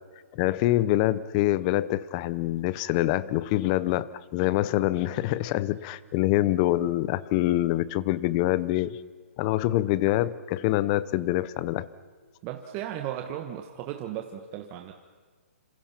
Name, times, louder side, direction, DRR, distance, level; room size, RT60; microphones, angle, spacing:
voice 1, 0.3-9.0 9.4-11.9, left 15 dB, 30° left, 18 dB, 0.8 m, -25 dB
voice 2, 12.4-14.9, right 11 dB, 25° right, 4 dB, 1.3 m, -35 dB
27.0 x 27.0 x 5.9 m, 1.5 s
hypercardioid pair, 155°, 8 cm